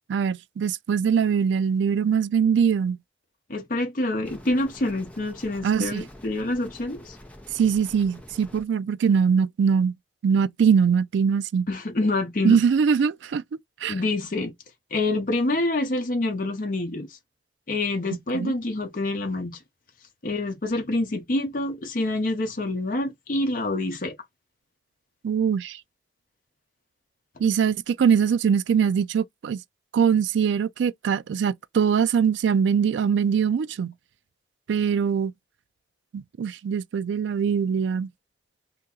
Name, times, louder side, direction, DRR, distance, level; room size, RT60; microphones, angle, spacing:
voice 1, 0.1-3.0 5.6-6.0 7.5-9.9 10.2-11.7 12.4-13.4 13.8-13.9 18.3-18.5 25.2-25.8 27.4-29.6 29.9-33.9 34.7-35.3 36.1-38.1, right 7 dB, 80° right, 0.3 m, -22 dB
voice 2, 3.5-7.2 11.7-12.6 13.9-14.5 14.9-17.1 17.7-19.6 20.2-24.2, left 2 dB, 45° left, 0.7 m, -27 dB
sound 1, 4.2-8.6, left 1 dB, 5° left, 0.6 m, -46 dB
2.9 x 2.7 x 3.7 m
head